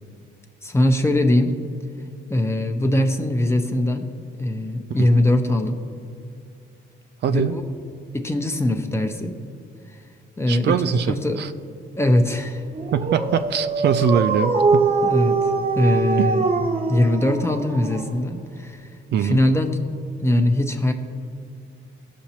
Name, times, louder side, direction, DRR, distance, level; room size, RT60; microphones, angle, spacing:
voice 1, 0.6-1.5 2.3-4.1 4.4-5.8 7.3-7.6 8.1-9.4 10.4-10.8 11.1-11.4 12.0-12.6 15.0-16.5 16.9-18.9 19.2-19.8 20.2-20.9, left 1 dB, 15° left, 5 dB, 0.8 m, -21 dB
voice 2, 7.2-7.6 10.5-11.5 12.9-14.9 16.2-16.3 19.1-19.4, right 8 dB, 60° right, 10 dB, 0.4 m, -22 dB
Dog, 12.7-18.4, right 4 dB, 30° right, 0.8 m, -23 dB
15.0 x 5.9 x 2.9 m, 2.4 s
cardioid pair, 90°, 20 cm